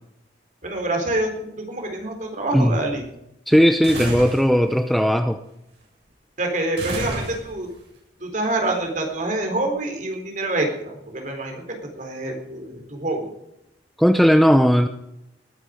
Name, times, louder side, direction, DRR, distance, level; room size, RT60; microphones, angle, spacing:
voice 1, 0.6-3.0 6.4-7.7 8.2-13.3, right 2 dB, 45° right, 3 dB, 3.9 m, -26 dB
voice 2, 3.5-5.4 14.0-14.9, equal, ahead, 8 dB, 0.6 m, -17 dB
sound 1, 3.8-4.5 6.8-7.7, right 1 dB, 70° right, 7.9 m, -29 dB
20.0 x 10.0 x 5.1 m, 0.83 s
head